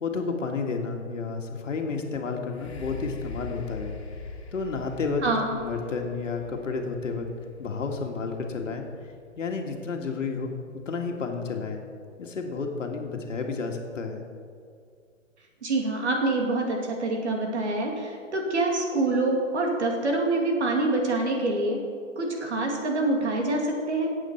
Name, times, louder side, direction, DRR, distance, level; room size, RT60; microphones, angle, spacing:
voice 1, 0.0-3.9 4.5-5.2 5.5-7.3 7.6-8.9 9.4-10.5 10.9-11.8 12.2-14.3, left 4 dB, 70° left, 3 dB, 2.0 m, -31 dB
sound 1, 2.5-10.2 10.9-11.0, left 3 dB, 50° left, 2.1 m, -42 dB
voice 2, 5.2-5.5 15.6-21.8 22.2-24.1, right 2 dB, 55° right, 1 dB, 2.7 m, -26 dB
15.5 x 8.3 x 4.5 m, 2.2 s
hypercardioid pair, 170°, 39 cm